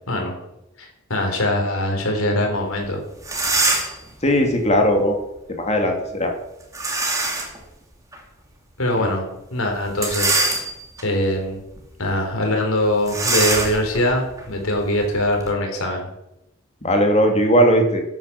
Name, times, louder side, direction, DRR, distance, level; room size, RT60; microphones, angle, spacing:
voice 1, 0.8-3.0 8.8-9.3 9.5-10.4 11.0-11.6 12.0-16.1, left 1 dB, 85° left, 2 dB, 4.1 m, -22 dB
sound 1, 2.8-2.9 3.2-4.1 6.7-7.6 8.1-8.2 9.9-11.0 11.6-11.8 12.0-12.2 13.1-15.5, right 2 dB, 15° right, 2.4 m, -23 dB
voice 2, 4.2-5.2 5.5-6.3 9.0-9.1 16.8-18.0, equal, 30° left, 3 dB, 2.4 m, -18 dB
11.5 x 9.4 x 6.8 m, 0.87 s
head